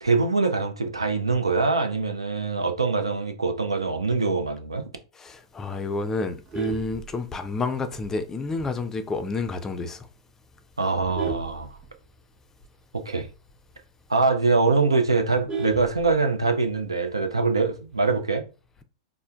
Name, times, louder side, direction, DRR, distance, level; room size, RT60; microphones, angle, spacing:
voice 1, 0.0-4.9 10.8-11.8 12.9-13.3 14.1-18.4, right 3 dB, 85° right, 0.5 m, -23 dB
voice 2, 5.1-10.1, left 3 dB, 20° left, 0.4 m, -30 dB
Vehicle horn car horn honking, 6.2-7.7 8.2-8.4 8.8-8.9 9.3-9.4 9.7-10.0 10.6-12.4 12.8-12.9 13.2-13.3 13.7-13.8 14.1-14.2 14.5-16.5 17.7-18.2, right 5 dB, 25° right, 0.8 m, -35 dB
4.3 x 2.0 x 2.3 m
figure-of-eight pair, 95°, 3 cm